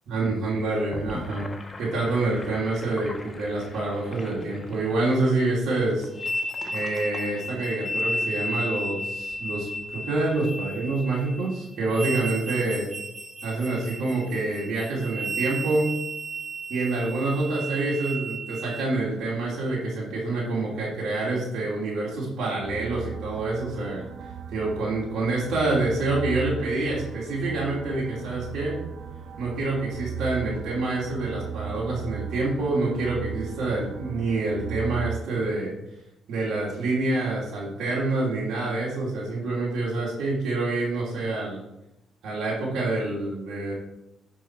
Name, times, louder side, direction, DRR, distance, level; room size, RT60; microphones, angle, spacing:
voice 1, 0.1-1.5 1.8-6.1 6.7-12.9 13.4-16.0 16.7-24.1 24.5-28.8 29.4-35.7 36.3-41.6 42.2-43.7, right 2 dB, 80° right, -5 dB, 2.7 m, -27 dB
Gurgling / Sink (filling or washing), 0.7-8.2, left 2 dB, 25° left, 1.2 m, -42 dB
sound 1, 6.1-18.8, right 1 dB, 5° left, 2.2 m, -33 dB
sound 2, 22.6-35.2, right 8 dB, 65° right, 0.9 m, -37 dB
10.5 x 4.7 x 4.5 m, 0.88 s
cardioid pair, 90°, 0 cm